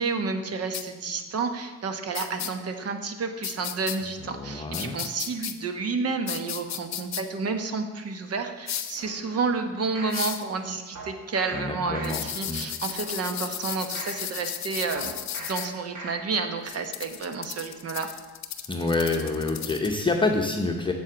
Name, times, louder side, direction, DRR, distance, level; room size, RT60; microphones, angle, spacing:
voice 1, 0.0-15.1 15.4-18.1, right 4 dB, 55° right, 7 dB, 1.0 m, -30 dB
sound 1, 0.7-0.8 2.1-2.5 3.4-4.0 4.7-5.5 6.3-7.2 8.7-9.0 10.1-10.4 12.0-15.7 16.7-19.9, left 10 dB, 60° left, 0.8 m, -34 dB
voice 2, 4.3-5.0 11.5-12.6 18.7-20.9, left 3 dB, 15° left, 1 dB, 0.8 m, -27 dB
sound 2, 9.0-10.2 11.0-11.6 11.9-12.5 12.9-14.2 15.0-15.6 16.0-16.5 16.9-17.0, right 2 dB, 70° right, 1.8 m, -42 dB
7.3 x 7.2 x 5.0 m, 1.3 s
cardioid pair, 90°, 30 cm